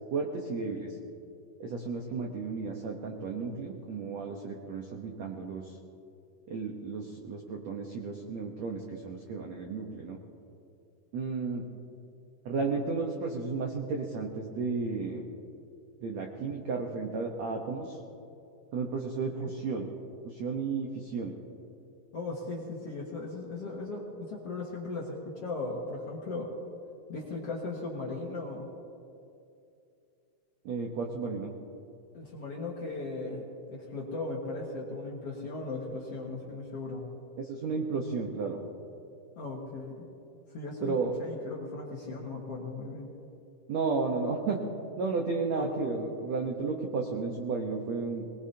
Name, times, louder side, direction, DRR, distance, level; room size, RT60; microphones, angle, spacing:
voice 1, 0.1-0.9 1.6-5.8 6.5-10.2 11.1-11.6 12.4-15.2 16.0-18.0 18.7-19.9 20.2-21.3 30.6-31.5 37.4-38.6 40.8-41.1 43.7-44.6 45.0-48.3, right 4 dB, 75° right, 1 dB, 1.5 m, -33 dB
voice 2, 22.1-26.5 27.1-28.7 32.1-37.0 39.4-40.1 40.5-43.1 45.5-45.7, left 3 dB, 55° left, -3 dB, 1.9 m, -37 dB
23.5 x 20.0 x 2.8 m, 2.6 s
omnidirectional pair, 4.7 m